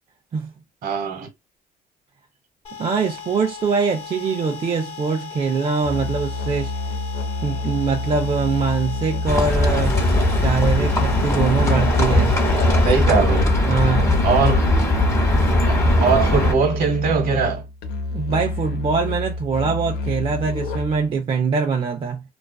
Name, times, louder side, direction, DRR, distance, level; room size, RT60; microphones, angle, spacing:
voice 1, 0.8-1.3 12.8-13.5 14.2-14.7 15.7-17.6, right 5 dB, 55° right, 1.1 m, -21 dB
sound 1, 2.6-13.0, left 7 dB, 40° left, 1.2 m, -37 dB
voice 2, 2.8-6.7 7.4-10.0 10.3-12.4 13.7-14.5 18.1-22.2, right 5 dB, 30° right, 0.4 m, -23 dB
Musical instrument, 5.8-21.1, left 2 dB, 70° left, 0.6 m, -28 dB
Livestock farm animals working animals, 9.3-16.5, left 1 dB, 20° left, 1.0 m, -19 dB
2.4 x 2.3 x 2.2 m
cardioid pair, 110°, 17 cm